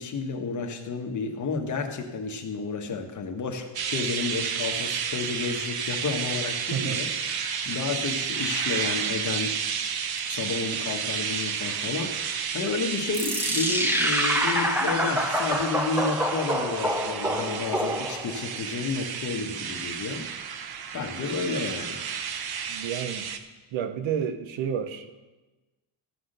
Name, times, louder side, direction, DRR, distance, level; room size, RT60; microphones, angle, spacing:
voice 1, 0.0-9.6 10.3-20.3 20.9-22.0, left 4 dB, 40° left, 3 dB, 1.3 m, -31 dB
sound 1, 3.8-23.4, right 7 dB, 55° right, 0.8 m, -31 dB
sound 2, 13.1-18.4, equal, 5° right, 0.9 m, -27 dB
voice 2, 22.7-23.2 23.7-25.1, right 8 dB, 75° right, 10 dB, 1.0 m, -30 dB
14.5 x 5.8 x 6.6 m, 1.2 s
cardioid pair, 165°, 46 cm